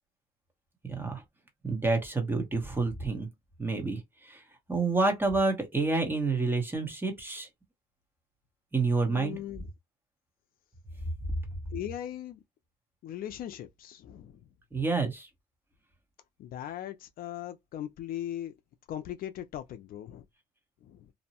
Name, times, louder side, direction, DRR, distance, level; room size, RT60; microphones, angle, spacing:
voice 1, 0.9-1.2 1.6-3.3 3.6-4.0 4.3-4.4 4.7-7.5 8.7-9.3 14.7-15.3, right 3 dB, 10° right, 1.0 m, -28 dB
voice 2, 9.1-9.7 11.7-12.4 13.0-14.4 16.4-18.5 18.9-20.3 20.8-21.1, left 11 dB, 60° left, 0.4 m, -39 dB
2.6 x 2.1 x 2.8 m
cardioid pair, 110°, 17 cm